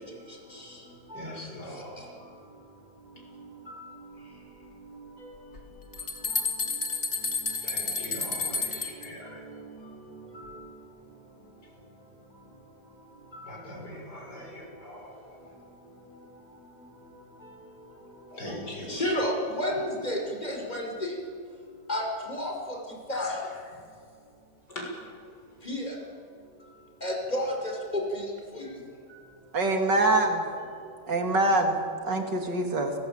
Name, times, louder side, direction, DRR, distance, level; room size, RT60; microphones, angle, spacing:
voice 1, 1.1-2.2 6.3-6.5 7.6-9.4 13.5-15.3 18.3-19.1 23.1-23.3 24.7-24.9, left 1 dB, 70° left, 0 dB, 7.0 m, -41 dB
sound 1, 5.6-5.7 5.9-9.1, left 4 dB, 40° left, 2.4 m, -30 dB
voice 2, 18.9-21.1 21.9-22.8 23.1-23.4 25.6-26.0 27.0-28.7, left 1 dB, 25° left, 1 dB, 5.3 m, -31 dB
voice 3, 29.5-30.4 31.1-32.9, right 2 dB, 80° right, 4 dB, 3.2 m, -24 dB
30.0 x 19.5 x 9.0 m, 2.4 s
omnidirectional pair, 1.9 m